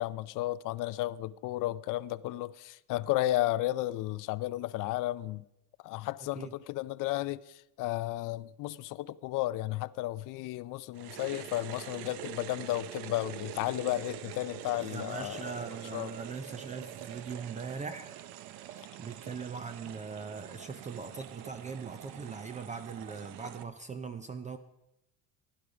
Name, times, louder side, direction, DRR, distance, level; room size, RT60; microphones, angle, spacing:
voice 1, 0.0-5.4 5.8-15.5 15.9-16.2, left 16 dB, 50° left, 0.5 m, -33 dB
sound 1, 10.9-23.6, right 12 dB, 75° right, 0.9 m, -45 dB
voice 2, 14.8-18.1 19.0-24.6, right 5 dB, 20° right, 0.5 m, -40 dB
16.0 x 11.0 x 4.9 m
cardioid pair, 140°, 40 cm